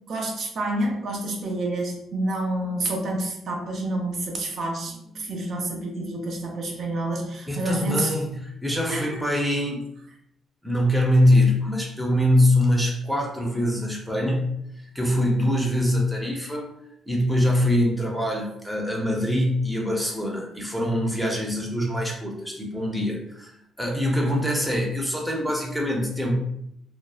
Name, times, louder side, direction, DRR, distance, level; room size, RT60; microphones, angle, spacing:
voice 1, 0.1-8.1 8.9-9.2, right 1 dB, 60° right, 0 dB, 0.5 m, -28 dB
voice 2, 7.5-9.8 10.6-14.6 14.9-16.7 17.1-26.3, left 1 dB, ahead, -1 dB, 0.6 m, -23 dB
2.7 x 2.0 x 2.3 m, 0.76 s
cardioid pair, 90°, 0 cm